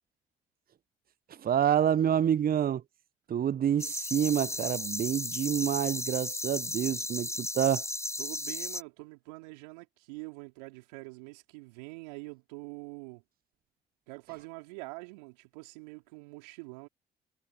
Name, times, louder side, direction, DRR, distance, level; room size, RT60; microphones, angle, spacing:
voice 1, 1.3-2.8 3.3-7.8, right 9 dB, 45° right, 0.8 m, -28 dB
sound 1, 3.8-8.8, left 1 dB, 15° left, 5.2 m, -35 dB
voice 2, 8.2-13.2 14.1-16.9, right 28 dB, 80° right, 4.2 m, -45 dB
hypercardioid pair, 45°, 20 cm